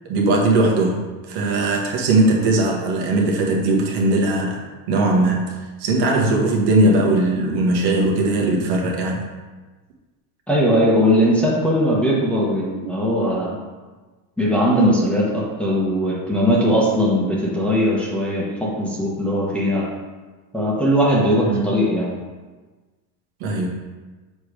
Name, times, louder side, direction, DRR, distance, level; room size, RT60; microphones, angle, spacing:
voice 1, 0.1-4.6 4.9-5.5 5.8-9.3 21.4-21.6 23.4-23.7, right 2 dB, 60° right, -1 dB, 1.4 m, -19 dB
voice 2, 10.5-13.6 14.4-19.9 20.5-22.1, equal, 5° left, -5 dB, 1.1 m, -19 dB
7.0 x 3.2 x 4.9 m, 1.3 s
supercardioid pair, 130°, 44 cm